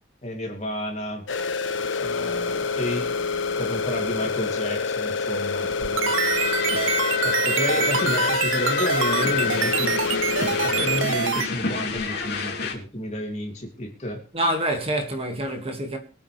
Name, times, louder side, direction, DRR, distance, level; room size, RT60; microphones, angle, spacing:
voice 1, 0.2-1.2 1.8-3.1 3.6-6.1 7.2-10.0 10.6-14.2, left 1 dB, 35° left, 2.8 m, -31 dB
sound 1, 1.3-11.1, left 4 dB, 75° left, 1.2 m, -27 dB
sound 2, 5.7-11.5, right 8 dB, 85° right, 0.6 m, -26 dB
sound 3, 6.0-12.7, left 5 dB, 55° left, 3.0 m, -28 dB
voice 2, 14.3-16.0, right 1 dB, 30° right, 2.0 m, -26 dB
23.0 x 8.6 x 3.4 m
head